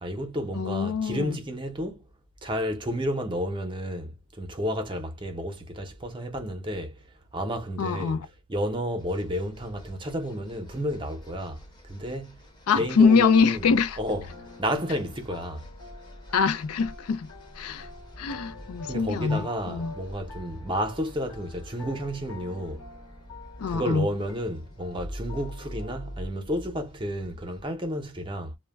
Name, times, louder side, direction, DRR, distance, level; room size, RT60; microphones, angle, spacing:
voice 1, 0.0-2.0 2.4-6.9 7.3-8.2 8.5-12.4 12.8-13.7 14.0-14.3 14.6-15.7 18.9-22.8 23.7-28.6, equal, 20° right, 0.6 m, -31 dB
voice 2, 0.5-1.4 7.8-8.2 12.7-14.0 16.3-17.3 17.6-17.9 18.2-19.9 23.6-24.1, left 5 dB, 85° left, 0.4 m, -24 dB
sound 1, 9.0-27.6, equal, 20° left, 0.7 m, -45 dB
sound 2, 14.1-26.2, left 3 dB, 65° left, 1.1 m, -47 dB
2.1 x 2.1 x 3.3 m
head